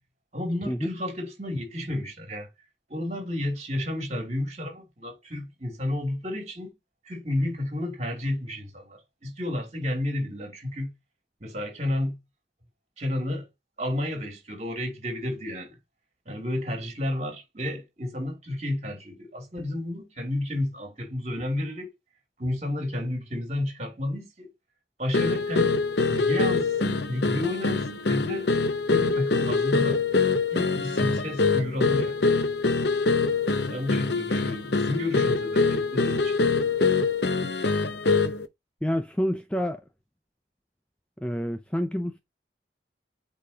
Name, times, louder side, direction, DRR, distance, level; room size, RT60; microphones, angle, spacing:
voice 1, 0.3-2.5 2.9-6.7 7.1-10.9 11.4-12.2 13.0-13.5 13.8-15.8 16.3-21.9 22.4-24.5 25.0-25.8 26.1-28.5 28.9-30.0 30.5-32.3 33.7-36.4, left 1 dB, 40° right, 2.7 m, -31 dB
sound 1, 25.1-38.5, left 4 dB, 65° left, 0.8 m, -24 dB
voice 2, 38.8-39.8 41.2-42.2, equal, 5° left, 0.5 m, -28 dB
8.4 x 4.2 x 2.8 m
head